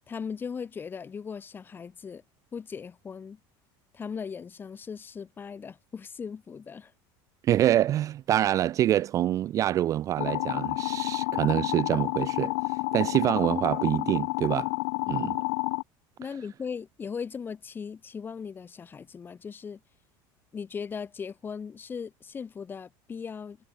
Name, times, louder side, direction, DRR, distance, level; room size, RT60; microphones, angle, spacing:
voice 1, 0.1-2.2 2.5-3.4 3.9-6.9 15.0-15.3 16.2-19.8 20.5-23.6, left 6 dB, 20° left, 4.9 m, -38 dB
voice 2, 7.4-14.7 15.1-15.4, right 12 dB, 30° right, 0.4 m, -26 dB
sound 1, 10.2-15.8, left 28 dB, 75° left, 0.6 m, -30 dB
cardioid pair, 170°, 11 cm